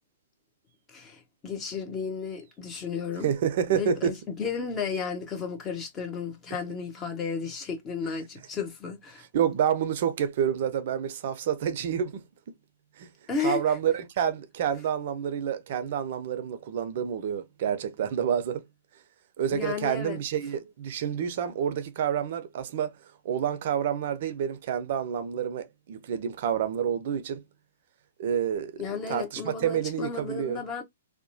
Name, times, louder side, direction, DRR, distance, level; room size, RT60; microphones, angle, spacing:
voice 1, 0.9-3.3 3.7-9.3 13.3-13.8 19.5-20.2 28.8-30.8, left 5 dB, 20° left, 0.8 m, -33 dB
voice 2, 3.2-4.2 9.3-12.2 13.0-13.1 13.4-18.6 19.4-22.9 23.2-27.4 28.2-28.8 29.1-30.6, right 8 dB, 50° right, 0.5 m, -28 dB
2.8 x 2.1 x 2.6 m
hypercardioid pair, 120°, 0 cm